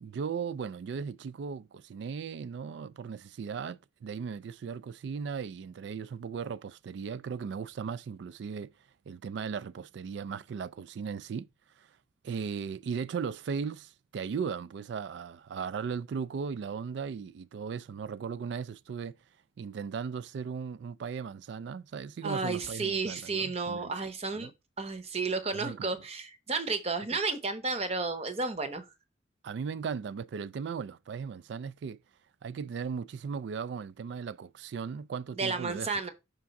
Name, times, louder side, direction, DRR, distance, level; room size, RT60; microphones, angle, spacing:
voice 1, 0.0-8.7 9.1-11.5 11.8-11.9 12.2-19.2 19.6-24.5 25.5-25.9 27.1-27.2 29.4-32.0 32.4-35.9, right 6 dB, 60° right, 0.3 m, -37 dB
voice 2, 22.2-24.5 24.8-28.9 35.3-36.1, right 4 dB, 30° right, 0.8 m, -32 dB
5.2 x 3.6 x 5.7 m
head